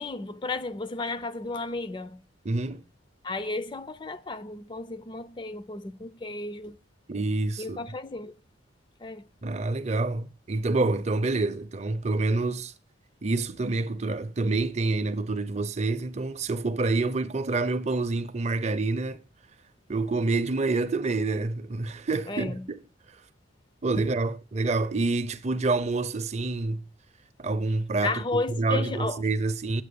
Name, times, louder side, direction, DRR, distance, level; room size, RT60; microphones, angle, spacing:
voice 1, 0.0-2.2 3.2-6.8 7.6-8.3 9.0-9.2 22.3-22.7 24.0-24.1 28.0-29.2, left 3 dB, 25° left, 0.4 m, -33 dB
voice 2, 2.4-2.8 7.1-7.8 9.4-12.7 13.2-19.2 19.9-22.8 23.8-26.8 27.4-29.8, right 3 dB, 35° right, 0.5 m, -27 dB
9.0 x 7.5 x 6.9 m
head